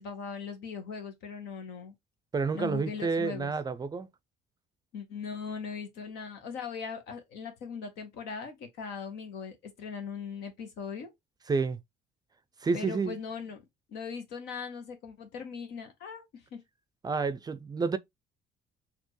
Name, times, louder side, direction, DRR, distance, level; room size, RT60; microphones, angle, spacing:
voice 1, 0.0-1.9 2.5-3.5 4.9-11.1 12.7-13.6 13.9-16.6, left 6 dB, 85° left, 1.3 m, -39 dB
voice 2, 2.3-4.1 11.5-11.8 12.6-13.2 17.0-18.0, right 4 dB, 25° right, 0.4 m, -29 dB
4.3 x 2.8 x 3.1 m
cardioid pair, 110°, 17 cm